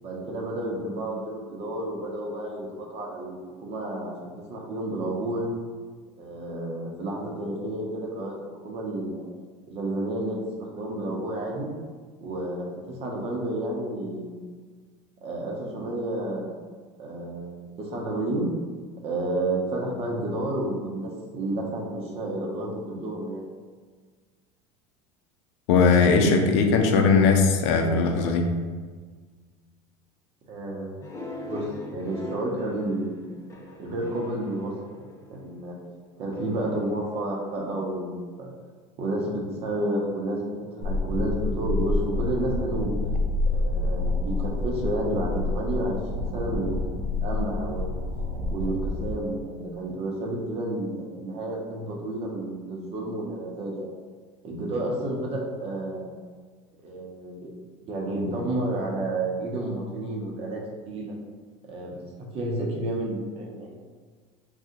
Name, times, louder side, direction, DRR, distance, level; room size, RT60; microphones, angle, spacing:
voice 1, 0.0-4.1 4.5-5.5 6.2-8.3 8.6-9.2 9.7-11.7 12.2-14.5 15.2-16.5 17.0-18.5 19.0-23.4 30.5-31.1 31.5-33.2 33.8-35.8 36.2-38.5 39.0-42.9 43.5-48.0 48.5-53.9 54.4-56.1 56.8-57.5 57.9-61.1 61.6-63.7, right 1 dB, 45° right, -2 dB, 0.8 m, -31 dB
voice 2, 25.7-28.5, left 4 dB, 75° left, 4 dB, 0.5 m, -19 dB
sound 1, 31.0-35.6 36.3-37.9, left 1 dB, 20° left, 0.6 m, -41 dB
sound 2, 40.8-49.1, left 2 dB, 75° right, 0.5 m, -28 dB
2.7 x 2.4 x 3.7 m, 1.5 s
supercardioid pair, 110°, 15 cm